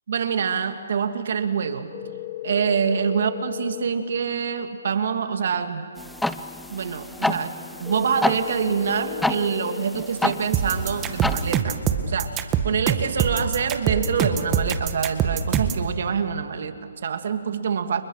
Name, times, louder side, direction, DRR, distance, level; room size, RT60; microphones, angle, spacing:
voice 1, 0.1-1.9 2.4-5.8 6.7-11.8 12.1-18.0, right 6 dB, 55° right, 7 dB, 2.6 m, -26 dB
sound 1, 1.9-3.8 7.8-9.8 13.8-14.7, left 15 dB, 20° left, 4.3 m, -35 dB
sound 2, 6.0-11.6, left 1 dB, ahead, 0.7 m, -29 dB
sound 3, 10.5-15.8, right 9 dB, 15° right, 1.7 m, -23 dB
30.0 x 29.5 x 6.7 m, 2.4 s
hypercardioid pair, 155°, 0 cm